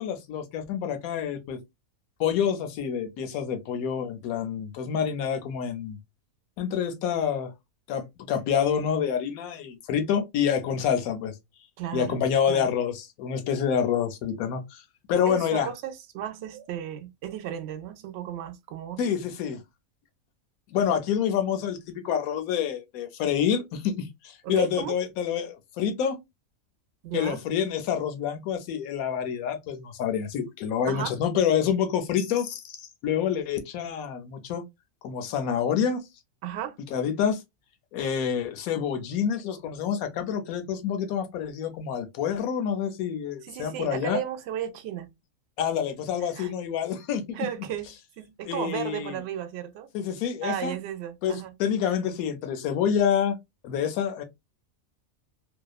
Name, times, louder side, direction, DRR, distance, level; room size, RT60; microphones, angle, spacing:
voice 1, 0.0-1.6 2.2-6.0 6.6-7.5 7.9-11.3 11.9-14.8 15.1-15.7 19.0-19.6 20.7-26.2 27.1-34.6 35.0-36.0 36.9-37.4 37.9-44.2 45.6-47.4 48.5-49.2 49.9-50.7 51.2-53.4 53.6-54.2, left 8 dB, 85° left, 1.1 m, -27 dB
voice 2, 11.8-12.2 12.5-12.7 15.3-19.0 24.4-25.0 27.0-27.4 30.9-31.2 36.4-36.8 43.4-45.1 46.2-46.5 47.3-47.9 48.2-49.9 50.4-51.5, right 10 dB, 65° right, 0.7 m, -34 dB
2.8 x 2.2 x 2.3 m
omnidirectional pair, 1.4 m